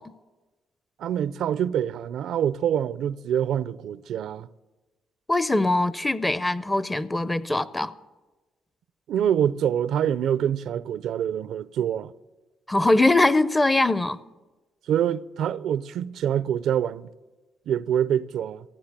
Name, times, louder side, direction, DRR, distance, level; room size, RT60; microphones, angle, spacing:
voice 1, 1.0-4.5 9.1-12.1 14.9-17.1 17.7-18.6, right 9 dB, 75° right, 0.4 m, -25 dB
voice 2, 5.3-7.9 12.7-14.2, left 2 dB, 15° left, 0.5 m, -22 dB
15.0 x 9.3 x 7.3 m
cardioid pair, 90°, 0 cm